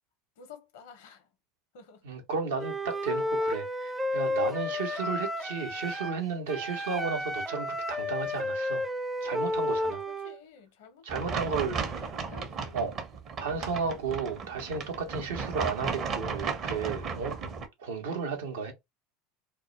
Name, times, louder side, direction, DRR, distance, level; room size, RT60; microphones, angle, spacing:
voice 1, 0.4-1.3 1.7-2.0 4.4-4.6 9.7-13.0, left 6 dB, 70° left, 0.7 m, -51 dB
voice 2, 2.0-8.8 9.2-10.0 11.0-11.8 12.7-12.9 13.4-17.4 17.8-18.7, right 5 dB, 75° right, 0.7 m, -33 dB
Wind instrument woodwind instrument, 2.6-6.2 6.5-10.4, left 1 dB, 10° right, 0.3 m, -32 dB
sound 1, 11.1-17.7, right 5 dB, 45° right, 0.7 m, -35 dB
2.2 x 2.1 x 2.9 m
hypercardioid pair, 85°, 0 cm